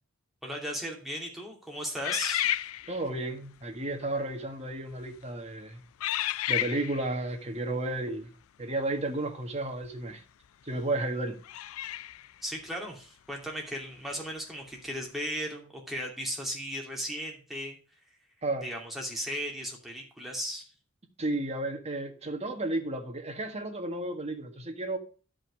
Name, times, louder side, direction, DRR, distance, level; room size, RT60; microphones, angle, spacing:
voice 1, 0.4-2.7 12.4-17.8 18.6-20.7, equal, ahead, 2.6 m, -36 dB
sound 1, 2.0-3.2 4.0-4.2 4.9-5.2 6.0-7.1 9.8-9.9 11.4-12.3, left 13 dB, 80° left, 0.4 m, -32 dB
voice 2, 2.9-5.8 6.5-8.3 8.6-10.2 10.6-11.4 18.4-18.7 21.2-25.0, right 2 dB, 30° right, 1.6 m, -32 dB
11.5 x 5.4 x 6.4 m
head